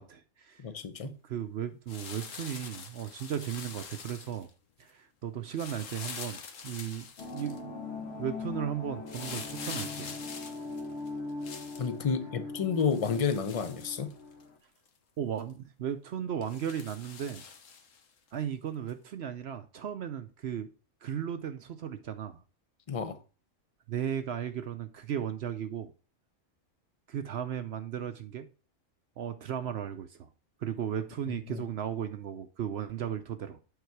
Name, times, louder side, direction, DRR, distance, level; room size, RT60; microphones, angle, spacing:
voice 1, 0.0-0.6 1.0-4.5 4.8-7.1 7.3-7.7 8.2-10.2 15.2-17.4 18.3-20.7 21.0-22.4 23.9-25.9 27.1-28.5 29.2-30.3 30.6-33.6, right 9 dB, 65° right, 0.8 m, -36 dB
voice 2, 0.6-1.1 11.8-14.1 22.9-23.2 31.3-31.6, left 6 dB, 35° left, 0.6 m, -31 dB
sound 1, 1.9-4.5 5.5-7.6 9.1-11.9 12.8-14.4 14.9-15.0 15.4-15.5 16.4-18.0 18.9-19.0, left 6 dB, 90° left, 1.4 m, -44 dB
sound 2, 7.2-14.6, left 3 dB, 60° left, 1.1 m, -41 dB
8.1 x 4.6 x 4.5 m
omnidirectional pair, 1.3 m